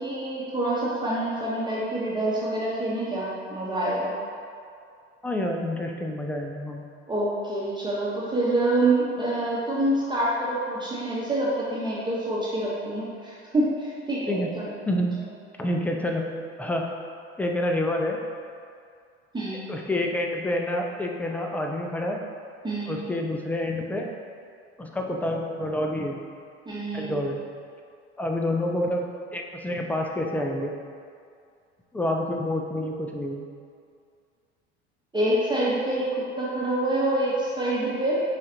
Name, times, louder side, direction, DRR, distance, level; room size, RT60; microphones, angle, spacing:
voice 1, 0.0-4.1 7.1-14.7 19.3-19.6 22.6-22.9 26.7-27.2 35.1-38.1, right 1 dB, 15° right, -8 dB, 1.0 m, -26 dB
voice 2, 5.2-6.9 14.3-14.5 14.9-15.1 15.6-16.3 16.6-16.9 17.4-18.2 19.7-22.2 22.9-24.1 24.8-26.2 26.9-27.4 28.2-30.7 31.9-33.5, left 1 dB, 5° left, 1 dB, 0.4 m, -28 dB
7.1 x 2.5 x 2.8 m, 2.3 s
hypercardioid pair, 70°, 35 cm